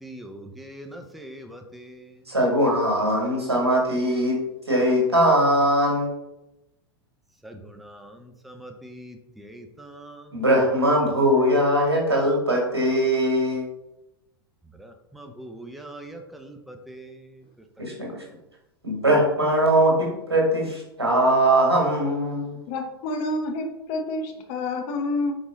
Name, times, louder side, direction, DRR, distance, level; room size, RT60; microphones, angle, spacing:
voice 1, 0.0-2.2 7.4-10.4 14.7-17.4, right 1 dB, ahead, 4 dB, 0.7 m, -43 dB
voice 2, 2.3-4.4 4.7-6.1 10.3-13.6 17.8-18.2 18.8-22.6, right 1 dB, 90° right, -1 dB, 2.2 m, -21 dB
voice 3, 22.7-25.4, left 2 dB, 45° left, 5 dB, 1.1 m, -28 dB
5.3 x 4.8 x 3.8 m, 0.91 s
figure-of-eight pair, 95°, 13 cm